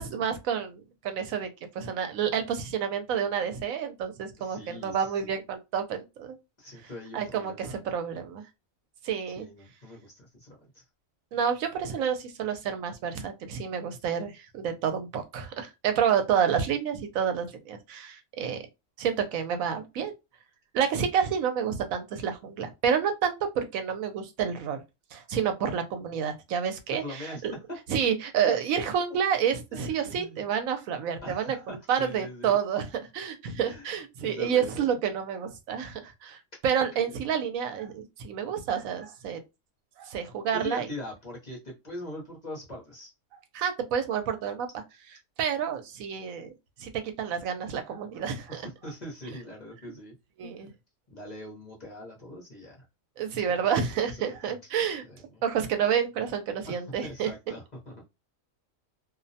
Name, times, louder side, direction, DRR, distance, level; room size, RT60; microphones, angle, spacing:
voice 1, 0.0-1.5 1.7-6.4 7.1-8.4 9.0-9.5 11.3-18.6 19.0-20.1 20.7-24.8 25.1-27.5 27.9-39.4 40.0-40.9 43.5-44.7 45.4-46.5 46.8-48.6 50.4-50.7 53.2-55.0 55.4-57.3, right 7 dB, 80° right, 1.0 m, -29 dB
voice 2, 4.4-5.4 6.6-7.8 9.3-10.8 26.9-27.6 29.7-30.5 31.2-32.6 33.6-33.9 34.2-34.9 37.0-37.1 40.5-43.1 48.5-50.1 50.4-50.7 51.1-52.8 53.3-54.6 55.0-55.4 56.6-58.0, left 1 dB, 40° left, 0.8 m, -42 dB
2.5 x 2.1 x 2.6 m
omnidirectional pair, 1.4 m